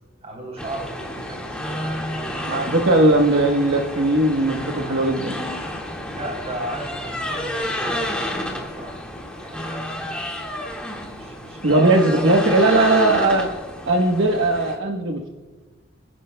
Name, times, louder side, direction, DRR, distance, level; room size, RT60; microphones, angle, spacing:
voice 1, 0.2-3.0 6.1-9.0 9.3-10.1 11.1-12.7, right 1 dB, 30° right, 0 dB, 3.3 m, -35 dB
sound 1, 0.6-14.8, left 1 dB, 5° left, 1.7 m, -30 dB
voice 2, 2.5-5.4 11.6-13.5 13.8-15.3, right 2 dB, 65° right, 2 dB, 1.1 m, -18 dB
26.5 x 11.0 x 2.2 m, 1.2 s
head